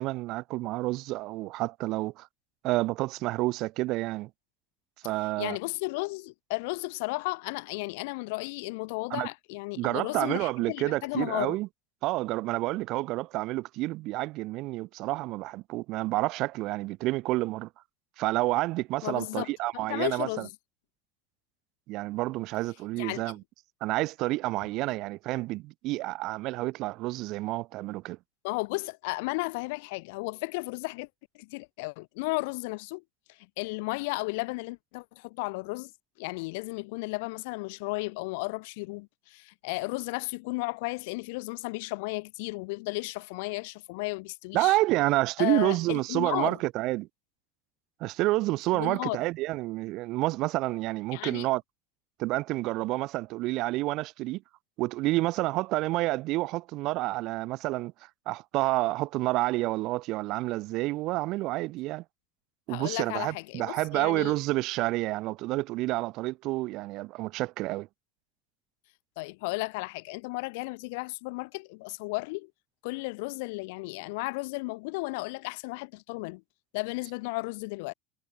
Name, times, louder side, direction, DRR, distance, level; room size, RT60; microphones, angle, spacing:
voice 1, 0.0-2.3 2.6-4.3 5.0-5.6 9.1-9.3 9.8-11.7 12.0-17.7 18.2-20.5 21.9-23.4 23.8-28.2 44.5-47.1 48.0-51.6 52.2-54.4 54.8-57.9 58.3-62.0 62.7-67.9, right 19 dB, 60° right, 2.7 m, -29 dB
voice 2, 5.4-11.6 19.0-20.5 22.9-23.3 28.4-31.1 31.3-33.0 33.3-35.9 36.2-44.8 45.4-46.6 48.7-49.2 51.1-51.5 62.7-64.4 69.2-72.5 72.8-76.4 76.7-77.9, left 26 dB, 85° left, 2.6 m, -34 dB
cardioid pair, 135°, 0 cm